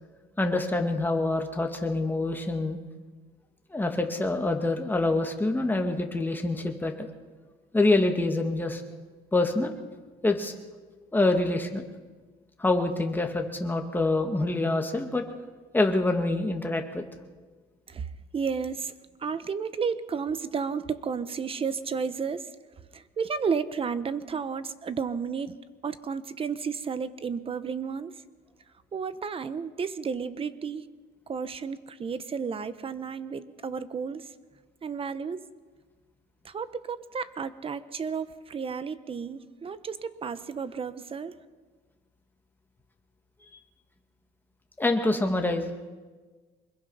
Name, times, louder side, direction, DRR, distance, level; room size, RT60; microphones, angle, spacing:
voice 1, 0.4-2.8 3.7-7.1 7.7-8.8 9.3-9.7 10.2-10.6 11.1-11.8 12.6-15.2 15.7-17.0 44.8-45.7, left 2 dB, 10° left, 3 dB, 2.2 m, -26 dB
voice 2, 17.9-18.9 19.2-22.5 22.9-25.6 25.8-28.2 28.9-30.8 31.3-34.3 34.8-35.5 36.4-41.4, right 6 dB, 35° right, 14 dB, 1.1 m, -32 dB
24.5 x 21.5 x 5.7 m, 1.4 s
cardioid pair, 110°, 17 cm